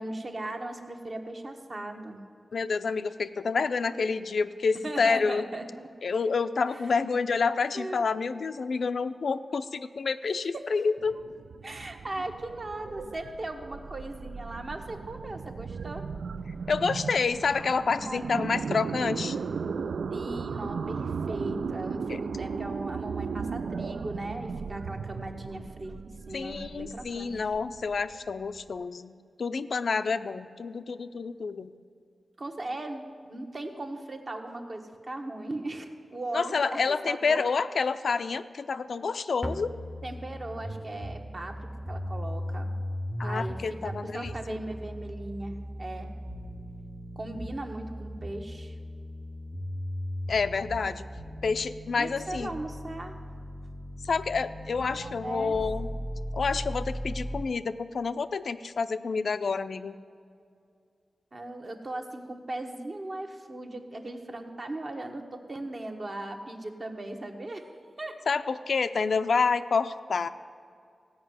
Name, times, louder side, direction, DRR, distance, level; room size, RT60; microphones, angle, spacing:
voice 1, 0.0-2.2 4.8-5.9 6.7-6.8 7.7-8.0 10.5-10.7 11.6-16.1 18.0-18.2 20.1-27.4 32.4-37.4 40.0-42.7 43.2-46.1 47.2-48.7 52.0-53.1 55.0-55.5 61.3-67.7 68.0-68.2, right 2 dB, 40° right, 4 dB, 1.1 m, -38 dB
voice 2, 2.5-5.4 6.0-11.2 16.7-19.4 22.1-22.2 26.3-29.1 29.4-31.7 36.3-39.8 43.2-44.6 50.3-51.1 51.4-52.5 54.1-55.9 56.3-60.0 68.3-70.3, left 5 dB, 70° left, 11 dB, 0.4 m, -28 dB
sound 1, 11.0-28.8, right 5 dB, 85° right, 0.3 m, -36 dB
sound 2, 39.4-57.4, equal, ahead, 0.7 m, -37 dB
16.0 x 5.5 x 9.3 m, 2.3 s
wide cardioid pair, 140°, 0 cm